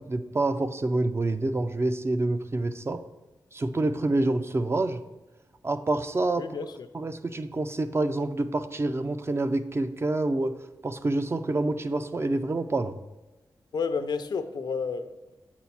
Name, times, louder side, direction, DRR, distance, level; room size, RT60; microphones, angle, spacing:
voice 1, 0.0-3.0 3.5-5.0 5.6-6.6 6.9-10.6 10.8-13.0, right 2 dB, 35° right, 9 dB, 0.5 m, -27 dB
voice 2, 6.4-6.9 13.7-15.3, left 5 dB, 75° left, 10 dB, 0.6 m, -31 dB
7.6 x 4.3 x 5.8 m, 1.1 s
cardioid pair, 70°, 8 cm